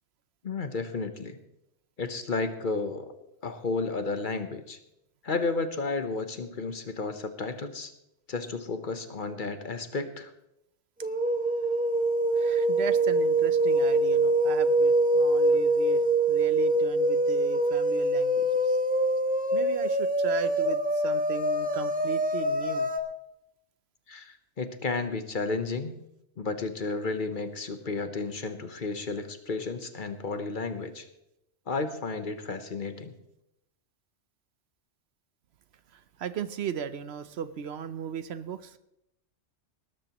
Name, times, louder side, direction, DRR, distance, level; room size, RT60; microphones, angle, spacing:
voice 1, 0.4-1.4 2.0-3.1 3.4-4.8 5.2-7.9 8.3-10.3 24.1-25.9 26.4-31.1 31.7-33.1, left 3 dB, 45° left, 9 dB, 1.0 m, -32 dB
sound 1, 11.0-23.0, right 1 dB, 10° right, 0.9 m, -24 dB
voice 2, 12.3-16.0 16.3-18.8 19.5-22.9 35.9-38.8, right 8 dB, 65° right, 13 dB, 0.9 m, -37 dB
19.0 x 13.0 x 3.0 m, 0.83 s
omnidirectional pair, 1.2 m